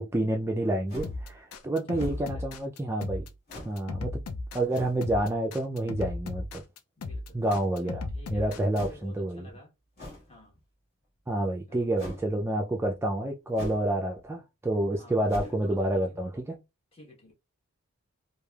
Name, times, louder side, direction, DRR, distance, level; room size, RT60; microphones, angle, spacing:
voice 1, 0.0-3.3 3.7-4.2 4.5-6.6 7.3-9.5 11.3-16.6, right 1 dB, 10° right, 0.3 m, -29 dB
sound 1, 0.9-1.3 1.9-2.4 3.5-3.8 4.7-5.0 7.4-7.9 8.7-9.1 10.0-10.4 12.0-12.3 13.5-13.9 14.3-14.4 15.3-15.7, equal, 50° left, 1.7 m, -42 dB
sound 2, 1.0-8.8, left 3 dB, 75° left, 0.5 m, -36 dB
voice 2, 1.9-2.4 7.0-7.5 7.8-9.7 10.3-10.6 11.7-11.9 14.9-16.3 16.9-17.3, left 2 dB, 25° left, 1.2 m, -52 dB
3.2 x 2.4 x 2.3 m
head